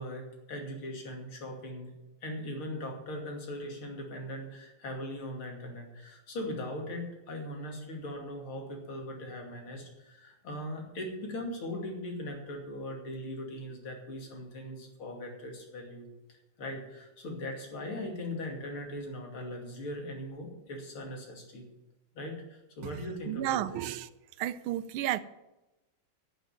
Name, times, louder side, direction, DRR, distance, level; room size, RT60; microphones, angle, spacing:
voice 1, 0.0-1.9 2.2-21.7 22.1-23.9, left 1 dB, 85° left, 3.4 m, -40 dB
voice 2, 23.3-24.1 24.4-25.2, right 13 dB, 90° right, 1.5 m, -32 dB
11.0 x 6.6 x 9.4 m
omnidirectional pair, 2.3 m